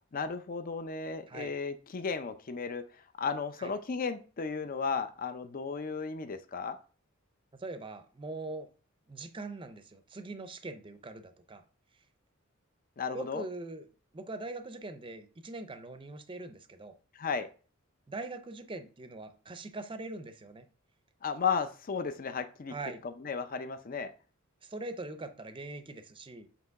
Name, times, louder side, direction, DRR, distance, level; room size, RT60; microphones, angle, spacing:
voice 1, 0.1-2.8 3.2-6.8 13.0-13.4 17.1-17.5 21.2-22.7 23.0-24.1, left 5 dB, 45° left, 9 dB, 0.5 m, -34 dB
voice 2, 7.6-8.7 9.1-11.6 13.1-13.9 14.1-16.9 18.1-20.7 22.7-23.0 24.6-26.5, right 2 dB, 25° right, 10 dB, 0.6 m, -42 dB
8.0 x 2.9 x 4.7 m, 0.37 s
head